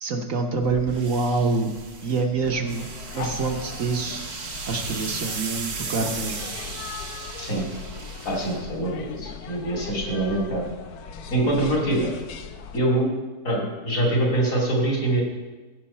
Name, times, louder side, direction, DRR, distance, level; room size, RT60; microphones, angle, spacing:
voice 1, 0.0-1.7 2.0-4.2 4.7-6.5, right 3 dB, 60° right, 3 dB, 1.3 m, -26 dB
sound 1, 0.6-9.2, right 5 dB, 80° right, 1.6 m, -37 dB
sound 2, 2.4-12.8, left 6 dB, 80° left, 1.2 m, -39 dB
voice 2, 8.2-10.6 11.3-12.1 12.7-13.1 13.4-15.2, right 1 dB, 60° left, -2 dB, 2.8 m, -24 dB
15.0 x 6.3 x 4.3 m, 1.3 s
omnidirectional pair, 1.6 m